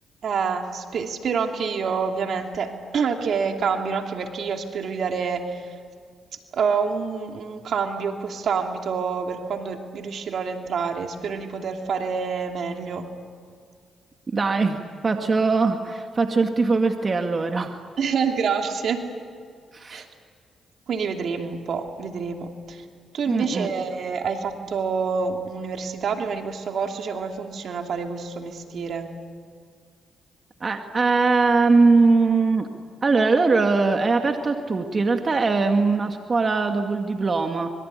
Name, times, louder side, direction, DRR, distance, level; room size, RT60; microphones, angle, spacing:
voice 1, 0.2-5.8 6.5-13.1 18.0-19.1 19.9-20.1 20.9-22.8 23.1-29.1, right 5 dB, 65° right, 4 dB, 2.8 m, -27 dB
voice 2, 14.3-17.8 19.7-20.0 23.3-23.7 30.6-32.7 33.0-37.7, right 4 dB, 40° right, 5 dB, 2.1 m, -21 dB
25.5 x 23.0 x 9.7 m, 2.1 s
supercardioid pair, 55°, 0 cm